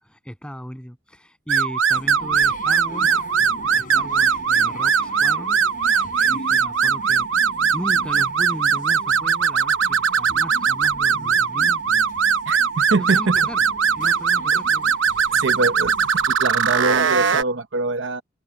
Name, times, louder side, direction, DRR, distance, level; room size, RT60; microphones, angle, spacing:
voice 1, 0.0-3.2 3.8-5.6 6.2-12.1 12.8-13.6 14.0-15.4, equal, 5° left, 7.7 m, -37 dB
sound 1, 1.5-17.4, right 6 dB, 85° right, 1.0 m, -20 dB
sound 2, 1.9-16.3, left 1 dB, 45° left, 6.5 m, -41 dB
voice 2, 12.5-13.4 14.5-14.6 15.3-15.9 16.3-18.2, right 3 dB, 70° right, 0.8 m, -23 dB
head